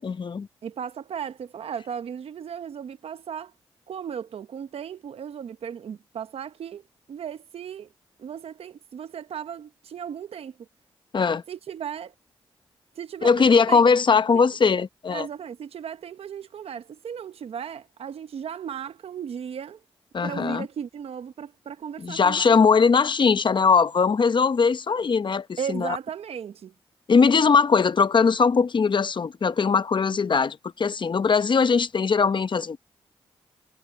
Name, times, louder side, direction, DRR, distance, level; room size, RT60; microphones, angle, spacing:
voice 1, 0.0-0.5 11.1-11.4 13.2-15.3 20.1-20.7 22.0-26.0 27.1-32.8, left 5 dB, 50° left, 0.8 m, -20 dB
voice 2, 0.6-3.5 3.9-6.8 7.1-7.9 8.2-10.6 11.5-12.1 13.0-13.8 14.3-14.4 15.1-19.8 20.2-22.6 25.6-26.7, right 8 dB, 75° right, 0.9 m, -36 dB
cardioid pair, 50°, 10 cm